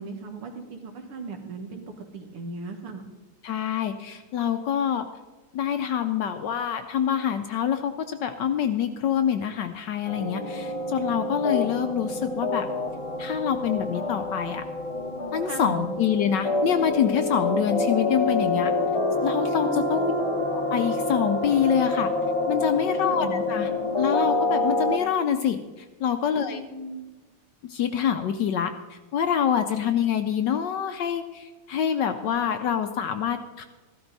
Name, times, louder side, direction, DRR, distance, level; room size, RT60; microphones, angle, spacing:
voice 1, 0.0-3.1 15.4-15.9 19.7-20.4 23.0-23.4 26.4-27.1, right 3 dB, 80° right, 4 dB, 2.4 m, -36 dB
voice 2, 3.4-5.0 5.5-12.7 13.2-14.6 15.3-18.7 19.2-20.1 20.7-22.1 22.5-23.7 24.0-26.6 27.7-33.6, left 8 dB, 70° left, 8 dB, 1.1 m, -26 dB
sound 1, 10.1-25.0, left 2 dB, 25° left, 0.6 m, -27 dB
14.5 x 12.5 x 4.0 m, 1.2 s
omnidirectional pair, 2.4 m